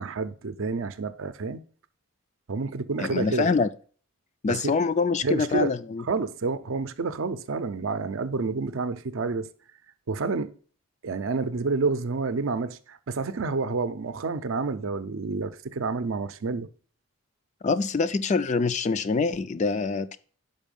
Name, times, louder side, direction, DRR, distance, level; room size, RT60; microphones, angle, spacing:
voice 1, 0.0-1.6 2.5-3.5 4.5-4.7 5.2-5.7 6.1-9.5 10.1-10.5 11.0-16.7, right 4 dB, 70° right, 0.5 m, -29 dB
voice 2, 3.0-3.7 4.4-6.0 17.6-20.2, left 4 dB, 35° left, 0.3 m, -25 dB
5.5 x 5.0 x 5.3 m
head